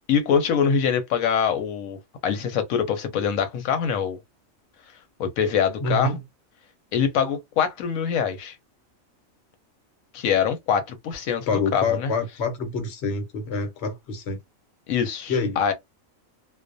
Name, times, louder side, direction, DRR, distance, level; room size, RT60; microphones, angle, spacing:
voice 1, 0.1-2.0 2.2-4.2 5.2-6.2 6.9-8.6 10.1-12.1 14.9-15.7, left 7 dB, 90° left, 1.0 m, -24 dB
voice 2, 5.8-6.2 11.5-14.4 15.3-15.6, left 3 dB, 60° left, 1.0 m, -26 dB
2.3 x 2.1 x 2.5 m
omnidirectional pair, 1.4 m